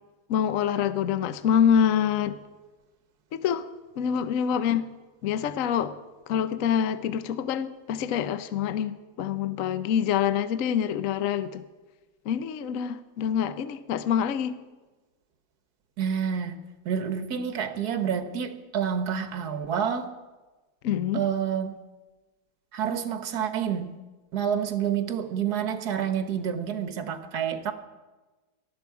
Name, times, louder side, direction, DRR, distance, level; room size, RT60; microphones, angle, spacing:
voice 1, 0.3-2.4 3.3-3.7 4.0-4.9 5.2-6.0 6.3-11.6 12.2-14.6 20.8-21.2, left 8 dB, 60° left, 12 dB, 0.8 m, -26 dB
voice 2, 16.0-16.6 16.8-20.1 21.1-21.8 22.7-23.9 24.3-27.7, right 8 dB, 55° right, 9 dB, 1.5 m, -28 dB
18.5 x 13.0 x 4.7 m, 1.2 s
omnidirectional pair, 2.2 m